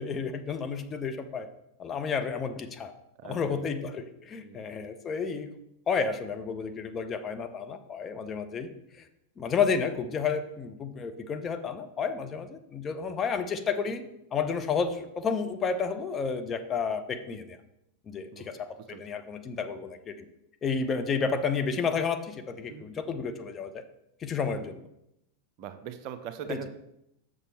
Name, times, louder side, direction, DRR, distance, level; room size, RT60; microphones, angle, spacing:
voice 1, 0.0-1.5 1.8-2.9 3.2-5.5 5.9-8.7 8.9-9.1 9.4-14.0 14.3-17.6 18.1-20.3 20.6-23.8 24.2-24.8 26.5-26.6, left 5 dB, 25° left, 7 dB, 0.7 m, -31 dB
voice 2, 3.2-3.7 4.4-4.6 18.3-18.5 18.9-19.0 22.7-22.9 24.5-24.6 25.6-26.7, right 9 dB, 40° right, 9 dB, 0.6 m, -41 dB
6.9 x 6.2 x 4.4 m, 0.82 s
figure-of-eight pair, 90°, 0 cm